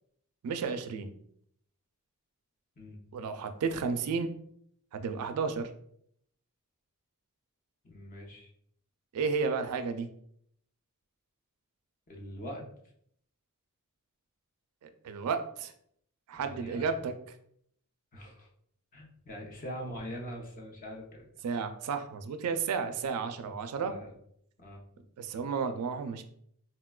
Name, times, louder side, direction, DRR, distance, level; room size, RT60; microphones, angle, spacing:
voice 1, 0.4-1.1 3.1-4.3 4.9-5.7 9.1-10.1 14.8-15.7 16.3-17.1 21.4-23.9 25.2-26.2, right 5 dB, 80° right, 8 dB, 0.3 m, -32 dB
voice 2, 7.8-8.5 12.1-12.7 16.3-17.0 18.1-18.5 18.9-21.2 23.4-23.6 23.8-24.1 24.6-24.8, equal, 35° left, 0 dB, 0.6 m, -43 dB
4.1 x 2.2 x 2.3 m, 0.68 s
head